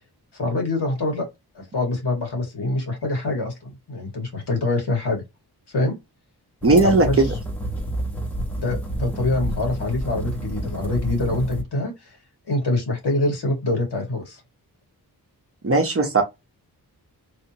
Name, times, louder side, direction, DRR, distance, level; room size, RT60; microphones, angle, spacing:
voice 1, 0.4-1.3 1.6-5.2 5.7-6.0 6.8-7.2 8.6-12.1 12.5-14.4, left 2 dB, 85° left, 1.8 m, -25 dB
sound 1, 6.6-11.6, right 1 dB, 5° left, 0.9 m, -29 dB
voice 2, 6.6-7.3 15.6-16.2, right 3 dB, 35° right, 0.8 m, -17 dB
3.2 x 2.8 x 2.8 m
wide cardioid pair, 140°, 39 cm